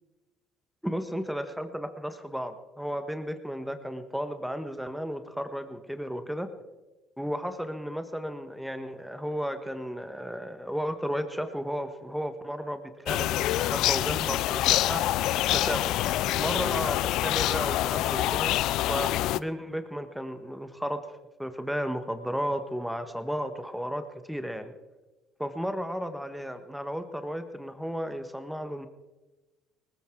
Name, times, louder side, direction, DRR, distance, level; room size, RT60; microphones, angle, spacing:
voice 1, 0.8-6.5 7.2-15.0 15.5-15.9 16.4-18.5 18.9-21.0 21.4-24.7 25.4-28.9, equal, ahead, 9 dB, 1.4 m, -33 dB
sound 1, 13.1-19.4, left 15 dB, 65° left, 0.4 m, -26 dB
19.5 x 14.5 x 3.8 m, 1.1 s
hypercardioid pair, 65°, 0 cm